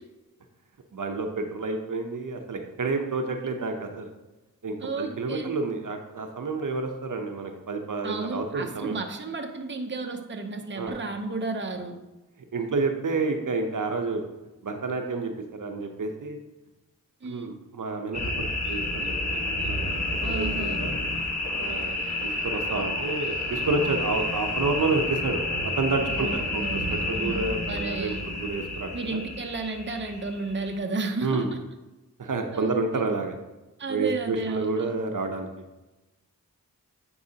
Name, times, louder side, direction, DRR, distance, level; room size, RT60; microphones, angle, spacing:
voice 1, 0.9-4.1 4.6-9.0 10.8-11.0 12.5-14.2 14.6-16.4 17.2-21.0 21.6-29.2 31.2-31.5 32.2-33.4 33.9-35.5, right 3 dB, 60° right, 4 dB, 0.8 m, -30 dB
voice 2, 4.8-5.6 8.0-12.0 17.2-17.5 20.2-20.8 26.1-28.2 28.9-31.6 32.5-33.1 33.8-34.9, right 3 dB, 35° right, 4 dB, 0.8 m, -33 dB
sound 1, 18.1-30.7, left 2 dB, 50° left, 1.4 m, -30 dB
9.5 x 4.7 x 2.8 m, 1.0 s
wide cardioid pair, 55°, 35 cm